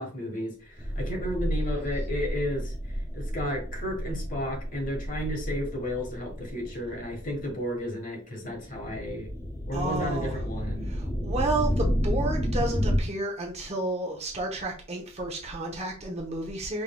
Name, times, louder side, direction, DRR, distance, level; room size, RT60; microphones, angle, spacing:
voice 1, 0.0-2.7 3.1-9.3 9.7-10.9, equal, 35° left, 2 dB, 1.3 m, -33 dB
sound 1, 0.8-7.5 8.5-13.0, equal, 15° left, 0.4 m, -31 dB
voice 2, 9.7-10.4 10.9-16.8, right 2 dB, 30° right, 0 dB, 0.8 m, -31 dB
5.4 x 3.2 x 2.2 m, 0.36 s
head